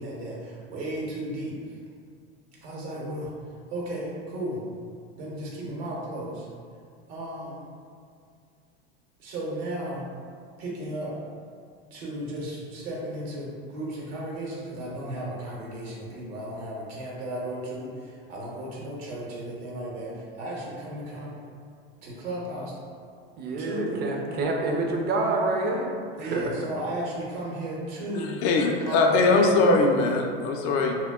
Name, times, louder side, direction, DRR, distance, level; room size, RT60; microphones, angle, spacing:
voice 1, 0.0-1.6 2.6-3.3 3.7-4.6 5.2-6.5 7.1-7.6 9.2-10.1 10.6-11.2 11.9-21.4 22.0-22.7 23.6-24.2 26.2-28.4 28.9-29.8, right 1 dB, 75° right, -4 dB, 0.9 m, -34 dB
voice 2, 23.4-25.9 26.2-26.4, right 2 dB, 35° right, 0 dB, 0.5 m, -27 dB
voice 3, 28.4-30.9, left 3 dB, 50° left, 2 dB, 0.4 m, -21 dB
2.2 x 2.1 x 3.5 m, 2.2 s
hypercardioid pair, 95°, 31 cm